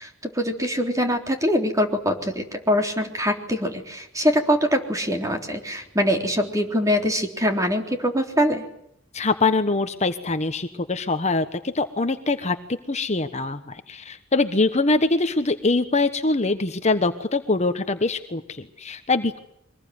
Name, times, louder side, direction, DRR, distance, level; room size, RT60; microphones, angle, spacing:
voice 1, 0.0-8.7, equal, 15° right, 4 dB, 3.7 m, -23 dB
voice 2, 9.1-12.6 12.9-19.4, left 3 dB, 35° left, 9 dB, 1.2 m, -23 dB
24.5 x 20.5 x 9.6 m, 0.73 s
head